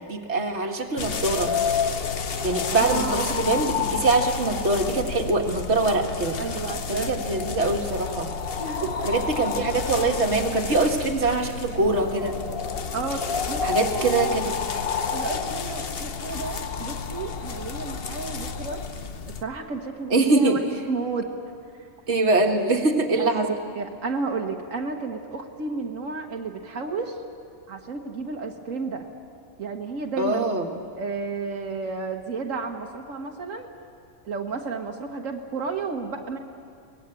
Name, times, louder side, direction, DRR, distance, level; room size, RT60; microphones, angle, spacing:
voice 1, 0.0-1.5 2.4-6.4 6.9-8.3 9.1-12.4 13.6-14.5 20.1-20.6 22.1-23.6 30.2-30.7, right 3 dB, 60° right, 2 dB, 2.0 m, -23 dB
sound 1, 1.0-19.4, left 6 dB, 50° left, 1.1 m, -30 dB
voice 2, 2.7-3.2 6.4-7.2 8.6-9.1 12.9-13.2 13.5-14.4 15.1-18.8 19.4-20.6 20.9-21.3 23.2-23.5 23.8-27.2 27.7-29.1 29.6-33.7 34.2-36.4, right 4 dB, 90° right, 2 dB, 1.7 m, -32 dB
23.5 x 18.5 x 8.9 m, 2.3 s
omnidirectional pair, 1.3 m